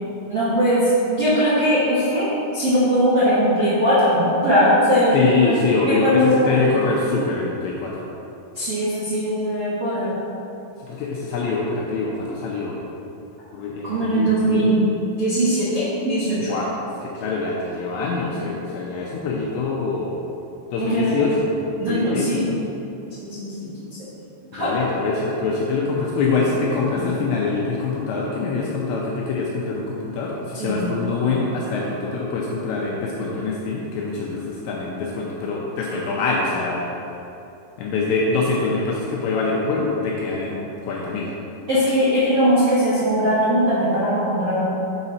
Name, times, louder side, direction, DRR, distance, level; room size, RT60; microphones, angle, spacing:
voice 1, 0.3-0.8 1.1-2.3 2.5-5.6 5.9-6.6 8.5-10.1 13.8-14.8 15.2-16.5 20.8-21.1 21.8-22.5 23.2-23.7 24.5-24.7 30.5-30.9 41.7-44.6, equal, 75° right, -12 dB, 1.3 m, -20 dB
voice 2, 5.1-8.1 10.9-12.8 13.5-14.7 16.5-16.7 17.0-20.2 20.7-21.5 21.8-22.6 24.5-36.9 37.8-41.3, left 4 dB, 80° left, -3 dB, 2.7 m, -24 dB
8.0 x 5.2 x 4.2 m, 2.9 s
omnidirectional pair, 5.6 m